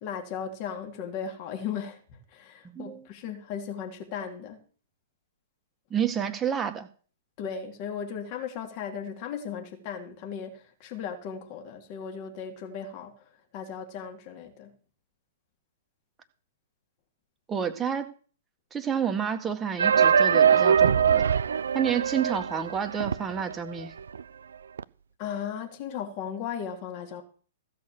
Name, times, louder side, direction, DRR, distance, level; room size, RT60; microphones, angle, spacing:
voice 1, 0.0-4.6 7.4-13.2 13.5-14.7 25.2-27.2, left 7 dB, 40° left, 3.2 m, -36 dB
voice 2, 2.6-3.0 5.9-6.9 17.5-18.1 18.7-21.2 21.7-23.9, right 8 dB, 15° right, 1.8 m, -29 dB
sound 1, 19.8-23.5 23.8-23.9 24.1-24.2 24.8-24.9, right 7 dB, 65° right, 0.5 m, -22 dB
15.5 x 6.6 x 7.1 m
figure-of-eight pair, 110°, 0 cm